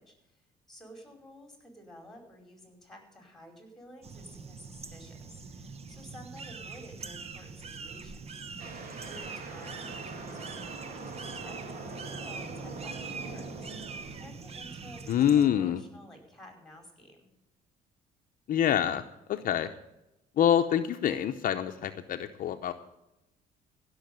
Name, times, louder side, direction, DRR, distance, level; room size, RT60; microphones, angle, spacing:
voice 1, 0.0-8.2 9.1-17.3, equal, ahead, 3 dB, 4.9 m, -52 dB
sound 1, 4.0-15.5, right 4 dB, 35° right, 1.1 m, -43 dB
sound 2, 8.6-14.9, right 3 dB, 50° right, 2.5 m, -43 dB
voice 2, 15.1-15.8 18.5-19.0 19.3-19.7 20.4-22.7, left 10 dB, 55° left, 6 dB, 0.8 m, -26 dB
15.5 x 6.5 x 7.9 m, 0.90 s
cardioid pair, 110°, 17 cm